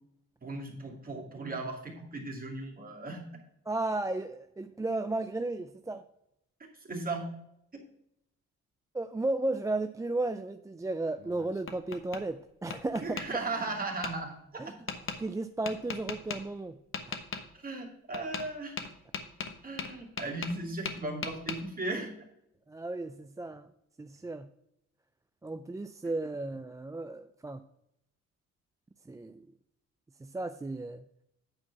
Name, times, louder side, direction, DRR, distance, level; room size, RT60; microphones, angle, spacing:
voice 1, 0.4-3.3 6.9-7.3 7.7-7.8 13.0-14.4 14.6-14.7 17.6-18.7 19.6-22.1, right 2 dB, 30° right, 0 dB, 2.6 m, -36 dB
voice 2, 3.7-6.1 8.9-13.2 14.6-14.7 15.2-16.8 17.1-17.2 22.7-23.7 24.0-24.5 25.4-27.6 29.1-29.4 30.2-31.0, right 2 dB, 10° right, 8 dB, 0.4 m, -34 dB
Tap, 11.2-12.2 12.7-13.3 14.0-14.1 14.9-15.2 15.6-16.4 16.9-17.4 18.1-18.5 18.8-20.6 20.8-21.6, left 5 dB, 45° left, 1.2 m, -37 dB
8.8 x 4.6 x 5.8 m, 0.79 s
cardioid pair, 90°, 30 cm